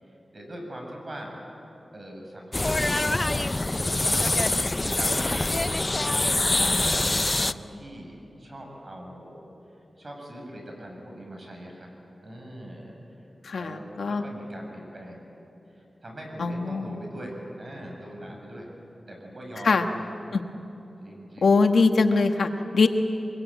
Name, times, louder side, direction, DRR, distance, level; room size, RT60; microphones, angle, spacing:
voice 1, 0.0-1.4 1.9-3.1 3.8-5.8 6.5-9.5 10.0-11.9 12.2-13.0 13.5-15.2 15.7-18.7 19.1-19.9 21.0-21.5, right 1 dB, 40° right, 0 dB, 7.2 m, -41 dB
sound 1, 2.5-7.5, left 2 dB, 25° left, 0.5 m, -24 dB
voice 2, 13.4-14.2 16.4-17.0 19.6-19.9 20.3-20.4 21.4-22.9, left 4 dB, 85° left, 6 dB, 1.3 m, -22 dB
24.0 x 22.0 x 9.1 m, 3.0 s
wide cardioid pair, 90°, 0 cm